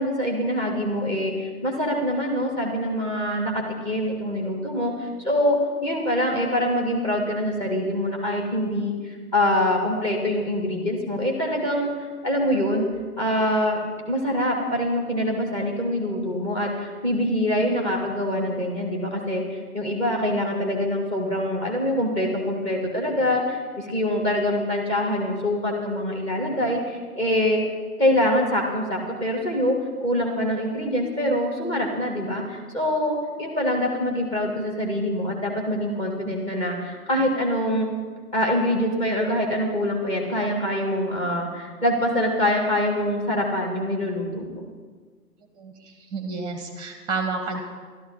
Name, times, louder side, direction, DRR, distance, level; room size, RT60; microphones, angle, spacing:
voice 1, 0.0-12.9 13.2-13.8 14.1-27.6 28.0-37.9 38.3-44.6, left 1 dB, 10° left, 1 dB, 1.8 m, -24 dB
voice 2, 45.5-47.6, right 4 dB, 10° right, 4 dB, 1.2 m, -31 dB
13.0 x 12.0 x 5.6 m, 1.5 s
figure-of-eight pair, 130°, 47 cm